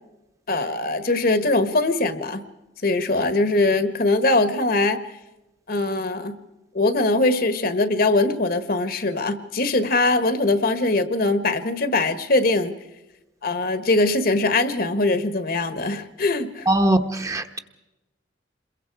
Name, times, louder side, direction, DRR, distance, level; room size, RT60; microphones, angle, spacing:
voice 1, 0.5-2.4 2.8-5.0 5.7-6.4 6.7-12.7 13.4-16.7, left 2 dB, 55° left, 1.4 m, -21 dB
voice 2, 16.7-17.6, right 1 dB, 20° right, 1.1 m, -21 dB
27.5 x 22.5 x 4.8 m
head